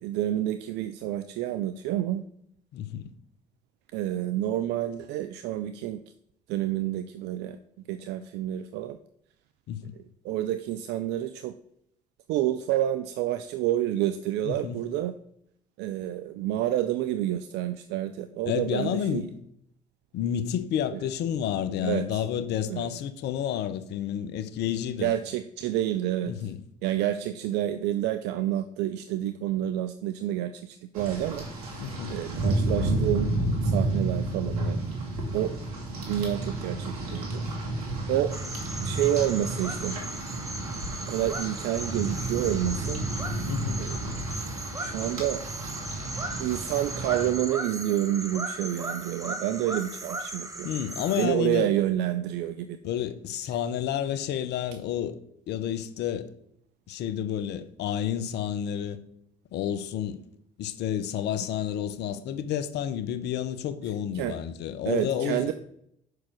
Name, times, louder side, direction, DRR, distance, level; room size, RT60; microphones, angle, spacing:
voice 1, 0.0-2.2 3.9-6.0 6.5-7.6 7.9-9.0 10.0-11.5 12.3-15.1 15.8-19.2 20.9-21.0 21.8-22.2 22.7-22.9 25.0-26.5 26.8-33.3 33.6-34.8 35.3-35.5 36.0-37.4 37.7-37.8 38.1-38.3 38.8-40.0 41.0-43.0 43.8-44.0 44.8-45.4 46.4-50.7 51.2-52.8 64.1-64.3 64.9-65.5, right 12 dB, 70° right, 0.4 m, -29 dB
voice 2, 2.7-3.1 9.7-9.8 14.4-14.8 18.5-19.3 20.1-25.1 26.2-26.6 31.8-32.2 43.5-43.9 50.6-51.7 52.8-55.2 55.5-56.3 56.9-59.0 59.5-60.2 60.6-65.5, left 9 dB, 65° left, 0.7 m, -30 dB
Rain, 30.9-47.3, right 2 dB, 85° right, 1.7 m, -31 dB
sound 1, 38.3-51.3, right 2 dB, 20° right, 1.2 m, -37 dB
5.6 x 4.8 x 6.3 m
hypercardioid pair, 55°, 18 cm